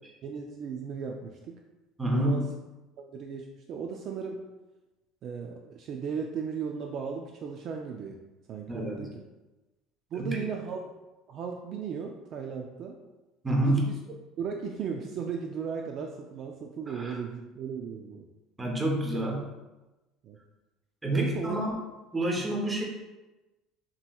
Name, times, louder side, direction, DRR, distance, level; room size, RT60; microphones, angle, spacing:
voice 1, 0.2-1.5 2.1-2.4 3.0-4.4 5.2-8.2 8.5-9.1 10.1-10.9 11.3-13.0 13.8-13.9 14.4-18.3 19.1-19.2 20.2-20.4 21.0-21.6, right 6 dB, 40° right, 2 dB, 0.3 m, -36 dB
voice 2, 2.0-2.4 8.7-9.1 10.1-10.4 13.4-13.9 16.9-17.2 18.6-19.4 21.0-21.7 22.1-22.8, right 1 dB, 10° right, -1 dB, 0.7 m, -28 dB
7.4 x 2.9 x 2.3 m, 1.1 s
cardioid pair, 170°, 0 cm